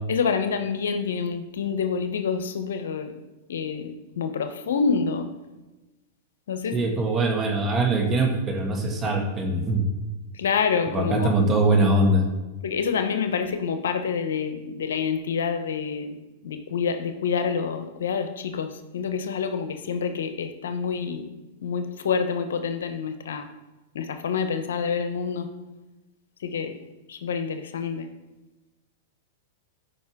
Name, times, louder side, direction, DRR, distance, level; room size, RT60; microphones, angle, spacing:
voice 1, 0.1-3.1 3.5-5.3 6.5-6.7 10.3-11.3 12.6-16.2 16.4-21.3 21.6-23.5 23.9-25.5 26.4-26.8 27.1-28.1, left 6 dB, 85° left, 8 dB, 0.9 m, -27 dB
voice 2, 6.7-9.8 10.9-12.2, right 2 dB, 25° right, 2 dB, 2.0 m, -22 dB
14.0 x 5.3 x 3.7 m, 1.1 s
hypercardioid pair, 120°, 0 cm